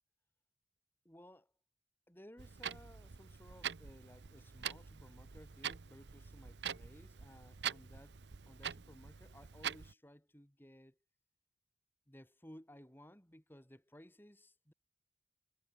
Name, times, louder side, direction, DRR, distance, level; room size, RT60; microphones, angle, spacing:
voice 1, 1.0-1.5 2.1-8.2 8.5-11.0 12.1-14.7, equal, 10° left, 4.4 m, -58 dB
Clock, 2.4-9.9, right 8 dB, 75° right, 0.8 m, -45 dB
head